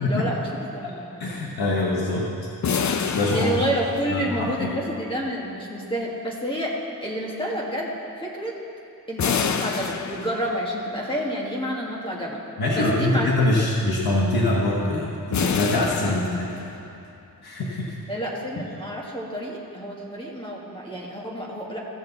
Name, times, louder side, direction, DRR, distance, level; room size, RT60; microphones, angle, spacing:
voice 1, 0.0-1.4 3.3-6.8 7.0-8.5 9.1-12.4 12.7-13.4 13.9-14.0 18.1-21.8, equal, 15° left, -3 dB, 1.7 m, -29 dB
voice 2, 1.2-2.3 3.1-3.5 4.1-4.7 12.6-16.5 17.4-18.0, left 2 dB, 80° left, -4 dB, 1.2 m, -24 dB
sound 1, 2.6-4.5 9.2-10.8 15.3-17.0, left 6 dB, 50° left, 0.5 m, -28 dB
15.5 x 7.1 x 3.9 m, 2.7 s
wide cardioid pair, 115°, 37 cm